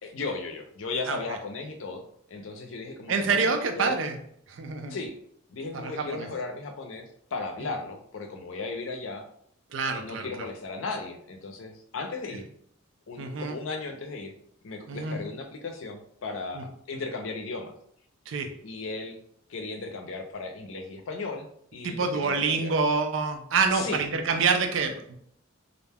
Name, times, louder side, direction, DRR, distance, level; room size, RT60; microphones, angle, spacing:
voice 1, 0.0-2.0 2.3-4.0 4.9-5.1 5.5-9.2 9.9-12.5 13.1-14.3 14.6-17.7 18.6-19.2 19.5-22.7 23.7-24.0, left 3 dB, 85° left, 4 dB, 0.5 m, -36 dB
voice 2, 1.1-1.4 3.1-4.2 4.5-5.0 5.7-6.3 9.7-10.5 13.2-13.6 14.9-15.2 16.5-16.6 18.3-18.6 21.8-25.2, right 4 dB, 75° right, 5 dB, 0.4 m, -27 dB
2.4 x 2.1 x 3.3 m, 0.67 s
head